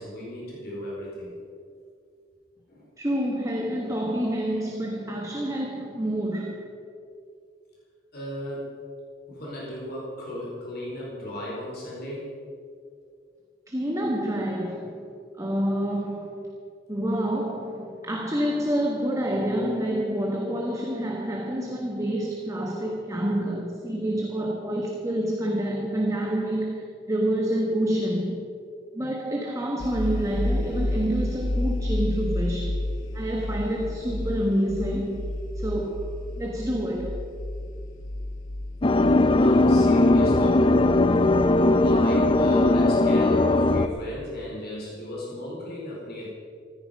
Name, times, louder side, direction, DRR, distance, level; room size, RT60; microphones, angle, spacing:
voice 1, 0.0-1.3 2.7-2.8 8.1-8.7 9.3-12.3 39.4-40.7 41.8-46.3, left 1 dB, 55° left, 4.4 m, -35 dB
voice 2, 3.0-6.8 13.7-15.1 15.4-16.5 16.9-28.5 28.9-32.9 33.1-36.1 36.4-37.2, right 1 dB, 15° right, 1.4 m, -28 dB
sound 1, 29.8-44.5, left 1 dB, 85° left, 1.0 m, -32 dB
sound 2, 38.8-43.9, left 2 dB, 25° left, 0.5 m, -19 dB
15.0 x 13.5 x 5.3 m
head